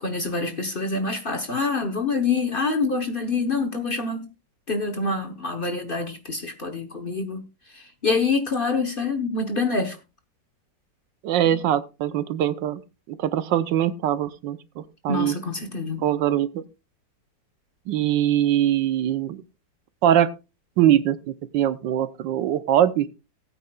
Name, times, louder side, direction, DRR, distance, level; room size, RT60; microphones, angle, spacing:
voice 1, 0.0-4.3 4.7-7.4 7.7-10.0 15.1-16.0, left 4 dB, 35° left, 1.0 m, -26 dB
voice 2, 11.2-12.8 13.1-15.4 16.0-16.6 17.9-19.4 20.0-20.3 20.8-23.1, right 11 dB, 85° right, 1.4 m, -22 dB
18.5 x 8.7 x 2.3 m
omnidirectional pair, 2.0 m